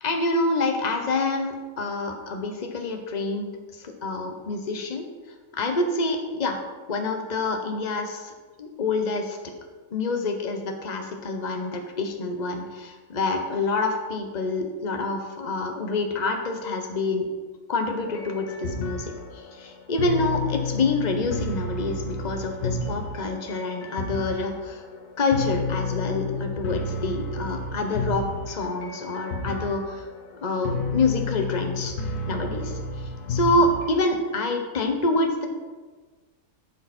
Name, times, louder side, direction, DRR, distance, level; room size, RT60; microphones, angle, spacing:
voice 1, 0.0-5.1 5.5-6.6 6.9-8.3 8.6-9.4 9.9-17.3 17.7-24.8 25.2-30.1 30.4-31.9 32.3-32.8 33.3-35.5, left 2 dB, 30° left, 4 dB, 1.1 m, -27 dB
sound 1, 18.1-34.0, left 2 dB, 85° left, 1.8 m, -31 dB
12.0 x 6.9 x 4.4 m, 1.3 s
omnidirectional pair, 1.6 m